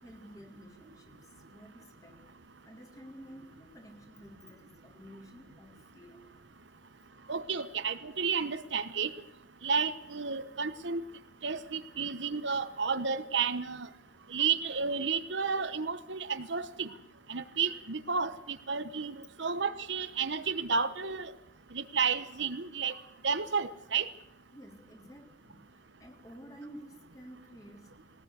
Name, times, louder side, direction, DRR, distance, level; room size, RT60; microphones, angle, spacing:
voice 1, 0.0-2.2 2.7-6.3 24.5-28.1, equal, 20° left, 2 dB, 3.5 m, -52 dB
voice 2, 7.3-9.1 9.6-11.0 11.4-13.9 14.3-16.9 17.3-21.3 21.7-22.9 23.2-24.1, right 5 dB, 65° right, 10 dB, 1.2 m, -32 dB
21.0 x 19.0 x 8.2 m, 0.78 s
head